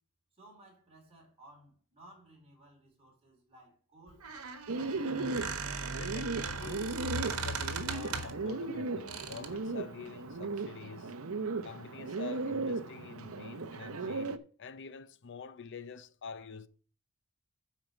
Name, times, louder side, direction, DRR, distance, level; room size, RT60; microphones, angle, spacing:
voice 1, 0.3-5.1, right 1 dB, 30° right, 4.0 m, -58 dB
Squeak, 4.1-8.5 9.1-9.6, right 4 dB, 90° right, 1.3 m, -38 dB
Bird, 4.7-14.4, right 3 dB, 65° right, 0.7 m, -37 dB
voice 2, 5.9-11.2 11.6-16.7, left 5 dB, 55° left, 0.6 m, -47 dB
9.2 x 4.6 x 6.7 m
head